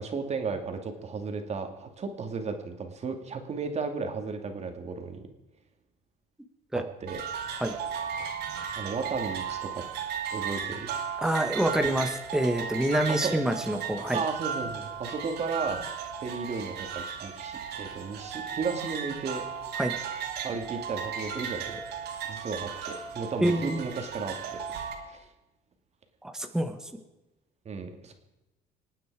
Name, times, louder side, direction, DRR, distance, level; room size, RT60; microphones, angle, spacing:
voice 1, 0.0-5.2 6.7-7.2 8.8-9.8 10.3-10.9 13.1-13.3 14.1-15.8 16.2-19.4 20.4-21.8 22.3-24.6 25.1-25.3 27.6-28.1, right 4 dB, 40° right, 5 dB, 2.5 m, -34 dB
sound 1, 7.1-24.9, right 7 dB, 75° right, 2.5 m, -35 dB
voice 2, 11.2-14.2 19.8-19.9 23.4-23.8 26.2-26.8, right 1 dB, 5° right, 6 dB, 1.4 m, -27 dB
26.0 x 9.3 x 4.9 m, 0.99 s
cardioid pair, 110°, 17 cm